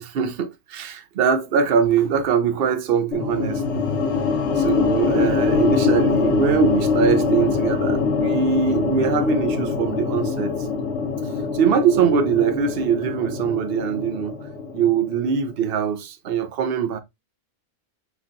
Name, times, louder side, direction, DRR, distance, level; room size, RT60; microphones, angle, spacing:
voice 1, 0.0-3.9 4.6-10.5 11.5-14.3 14.7-17.0, right 6 dB, 55° right, 0.7 m, -22 dB
sound 1, 3.1-15.4, left 5 dB, 55° left, 1.1 m, -23 dB
5.9 x 2.8 x 2.6 m
omnidirectional pair, 1.5 m